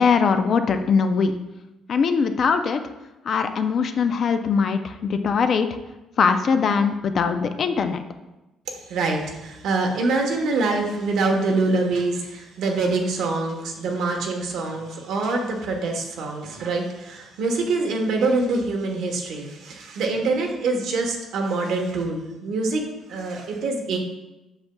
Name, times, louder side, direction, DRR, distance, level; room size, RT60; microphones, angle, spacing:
voice 1, 0.0-1.3 1.9-2.8 3.2-5.7 6.2-8.0, left 5 dB, 35° left, 8 dB, 0.4 m, -21 dB
voice 2, 8.7-22.8 23.1-24.0, right 3 dB, 60° right, 2 dB, 1.1 m, -25 dB
7.9 x 6.9 x 2.3 m, 1.0 s
cardioid pair, 180°, 0 cm